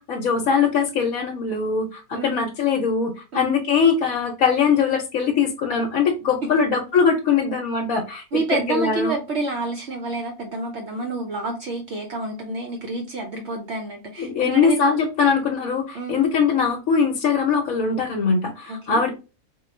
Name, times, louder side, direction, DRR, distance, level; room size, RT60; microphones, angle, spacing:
voice 1, 0.0-8.2 8.7-9.2 14.2-19.1, left 6 dB, 70° left, 1 dB, 1.1 m, -21 dB
voice 2, 8.3-14.8 15.9-16.2 18.7-19.0, right 2 dB, 60° right, 3 dB, 0.8 m, -28 dB
3.8 x 2.4 x 3.1 m, 0.30 s
omnidirectional pair, 1.5 m